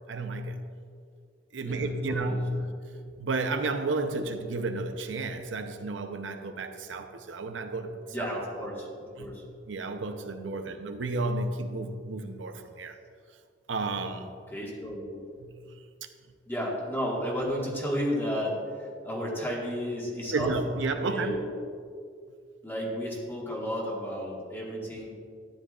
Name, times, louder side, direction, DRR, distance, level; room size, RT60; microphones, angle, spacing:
voice 1, 0.1-0.6 1.5-2.6 3.0-8.3 8.6-8.7 9.2-13.0 13.7-14.3 15.4-15.7 16.0-16.1 20.3-21.4, right 3 dB, 80° right, 0.7 m, -32 dB
voice 2, 1.6-2.4 8.1-8.9 9.2-9.4 10.6-10.7 14.5-15.2 16.5-20.5 21.1-21.4 22.6-25.1, equal, 10° left, 1.7 m, -32 dB
13.0 x 10.5 x 2.4 m
head